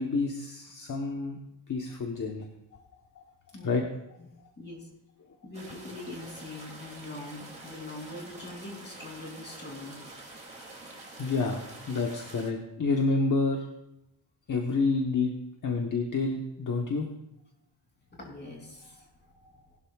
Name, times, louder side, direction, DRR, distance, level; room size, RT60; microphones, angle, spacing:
voice 1, 0.0-1.4 1.7-2.5 3.6-3.8 11.2-13.7 14.5-15.3 15.6-17.1, left 3 dB, 45° left, 1 dB, 1.1 m, -28 dB
voice 2, 4.6-4.9 5.4-10.0 18.1-19.8, left 2 dB, 25° left, -1 dB, 3.0 m, -43 dB
sound 1, 5.5-12.5, right 2 dB, 15° right, 2.5 m, -47 dB
19.5 x 11.5 x 2.4 m, 0.84 s
wide cardioid pair, 175°, 42 cm